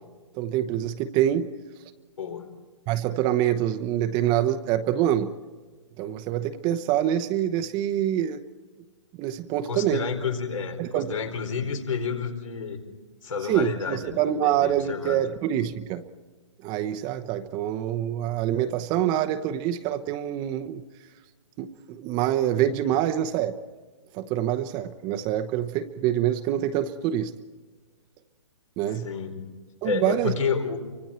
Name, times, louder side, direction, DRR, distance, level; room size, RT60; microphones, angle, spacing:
voice 1, 0.3-1.5 2.9-5.3 6.0-8.4 9.1-10.0 10.8-11.1 13.5-16.0 16.6-20.8 21.6-23.6 24.1-27.3 28.8-29.1 29.8-30.3, right 11 dB, 25° right, 9 dB, 0.9 m, -25 dB
voice 2, 2.2-2.5 9.7-12.8 13.2-15.2 28.9-29.4 29.8-30.8, left 6 dB, 75° left, 4 dB, 4.5 m, -30 dB
30.0 x 25.0 x 4.4 m, 1.4 s
hypercardioid pair, 145°, 17 cm